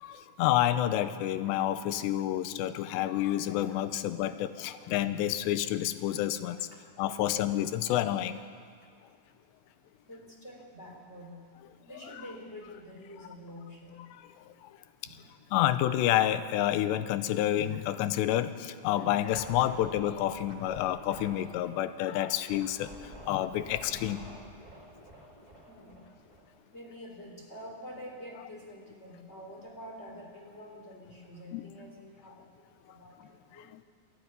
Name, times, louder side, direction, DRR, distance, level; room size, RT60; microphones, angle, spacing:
voice 1, 0.0-6.6 7.0-8.4 15.5-22.9 23.3-24.3 31.5-31.6, left 12 dB, 85° left, 12 dB, 2.9 m, -29 dB
voice 2, 6.7-7.2 10.0-11.5 11.8-14.0 15.1-15.2 25.7-26.0 26.7-32.5 32.9-33.7, equal, 15° left, 0 dB, 3.0 m, -47 dB
Scratching (performance technique), 19.3-21.6 22.5-26.8, right 1 dB, 25° right, 1.0 m, -49 dB
27.0 x 12.0 x 9.6 m, 2.1 s
omnidirectional pair, 5.0 m